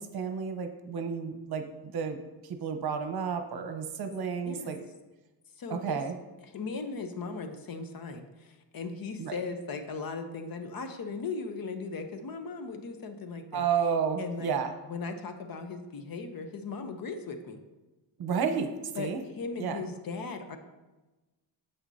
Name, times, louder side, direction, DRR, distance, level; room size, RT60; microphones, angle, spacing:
voice 1, 0.0-2.2 2.4-4.8 5.7-6.1 9.2-9.4 13.5-14.7 18.2-19.2 19.6-19.8, right 6 dB, 60° right, 7 dB, 0.9 m, -31 dB
voice 2, 5.6-6.0 6.5-13.6 14.2-14.5 14.9-17.6 18.9-20.6, left 4 dB, 55° left, 7 dB, 0.9 m, -38 dB
9.1 x 7.9 x 2.8 m, 1.1 s
cardioid pair, 115°, 43 cm